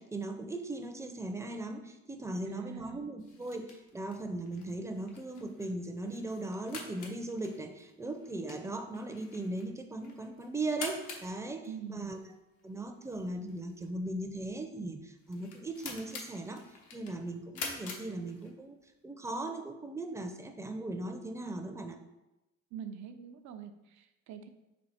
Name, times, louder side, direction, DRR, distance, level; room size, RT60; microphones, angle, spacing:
voice 1, 0.0-12.2 12.6-16.6 16.9-18.8 19.0-22.0, right 2 dB, 10° right, 6 dB, 0.4 m, -38 dB
voice 2, 2.5-3.1 11.7-12.1 22.7-24.5, right 8 dB, 70° right, 8 dB, 0.5 m, -45 dB
sound 1, 3.2-18.8, left 4 dB, 90° left, 0.9 m, -47 dB
4.4 x 2.8 x 4.1 m, 0.97 s
cardioid pair, 90°, 30 cm